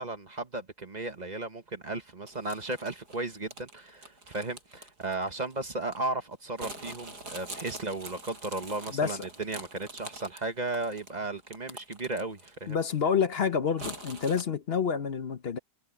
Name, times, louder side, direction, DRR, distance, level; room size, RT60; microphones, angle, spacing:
voice 1, 0.0-12.8, right 2 dB, 25° right, 1.3 m, -35 dB
sound 1, 2.3-6.0 6.6-12.7 13.0-13.1 13.8-14.4, right 2 dB, 65° right, 7.1 m, -45 dB
voice 2, 12.7-15.6, left 6 dB, 45° left, 1.0 m, -28 dB
omnidirectional pair, 1.8 m